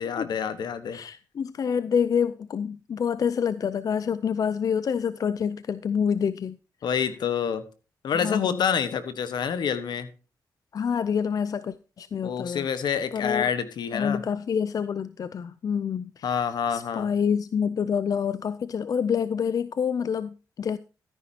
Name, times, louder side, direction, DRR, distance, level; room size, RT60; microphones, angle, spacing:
voice 1, 0.0-1.0 6.8-7.6 8.0-10.1 12.2-14.2 16.2-17.1, left 7 dB, 80° left, 1.3 m, -27 dB
voice 2, 0.9-6.6 8.1-8.7 10.7-12.7 13.1-13.5 13.9-16.4 16.7-20.8, left 7 dB, 55° left, 0.4 m, -27 dB
13.5 x 10.0 x 2.8 m
cardioid pair, 95°, 7 cm